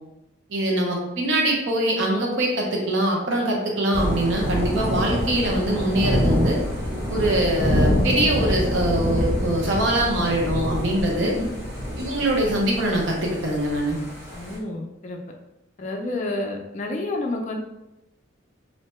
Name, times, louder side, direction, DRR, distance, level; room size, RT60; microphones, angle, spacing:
voice 1, 0.5-6.6 7.1-11.3 12.0-14.0, right 1 dB, 70° right, -1 dB, 0.7 m, -23 dB
Thunder / Rain, 3.9-14.6, equal, 15° right, 0.6 m, -26 dB
voice 2, 11.2-11.5 14.3-15.2 15.8-17.6, left 2 dB, 35° left, 1 dB, 0.3 m, -29 dB
2.6 x 2.2 x 3.0 m, 0.91 s
head